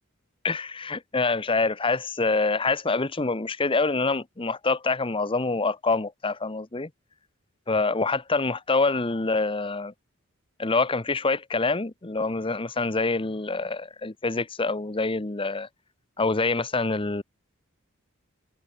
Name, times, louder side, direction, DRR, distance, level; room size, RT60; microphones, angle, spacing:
voice 1, 0.4-6.9 7.7-9.9 10.6-15.7 16.2-17.2, left 3 dB, 25° left, 0.9 m, -26 dB
head